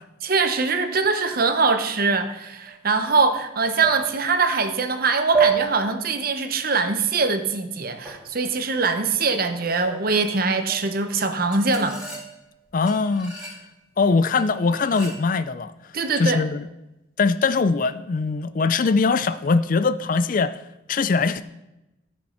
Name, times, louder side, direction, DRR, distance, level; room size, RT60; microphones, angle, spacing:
voice 1, 0.2-12.0 15.9-16.4, right 4 dB, 45° right, 0.9 m, -22 dB
sound 1, 2.7-2.8 3.8-4.5 5.3-6.2 8.0-8.3 9.8-10.3 10.7-11.0 11.5-12.5 12.9-13.6 14.4-15.3, right 6 dB, 5° right, 2.3 m, -29 dB
voice 2, 12.7-13.4 14.0-15.7 16.2-16.7 17.2-20.6 20.9-21.4, left 4 dB, 40° left, 0.4 m, -21 dB
13.5 x 5.3 x 5.7 m
head